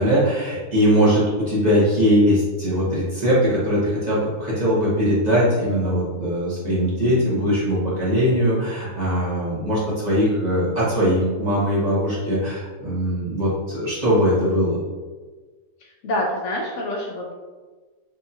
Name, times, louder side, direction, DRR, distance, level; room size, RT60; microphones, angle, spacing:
voice 1, 0.0-14.8, equal, 30° right, -9 dB, 1.3 m, -20 dB
voice 2, 15.8-17.3, left 1 dB, 65° left, -2 dB, 0.9 m, -27 dB
3.5 x 3.4 x 2.8 m, 1.3 s
omnidirectional pair, 1.4 m